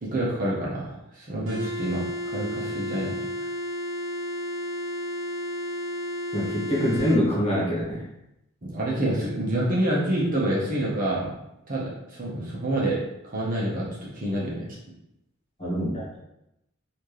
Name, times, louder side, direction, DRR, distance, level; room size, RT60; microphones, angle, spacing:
voice 1, 0.0-3.3 8.6-11.3 11.7-13.0 13.2-14.7, right 1 dB, 40° right, -6 dB, 1.0 m, -27 dB
sound 1, 1.5-7.2, equal, 60° right, 1.0 m, -32 dB
voice 2, 6.3-8.0 15.6-16.2, equal, 30° left, -6 dB, 1.5 m, -25 dB
4.3 x 2.8 x 3.3 m, 0.85 s
head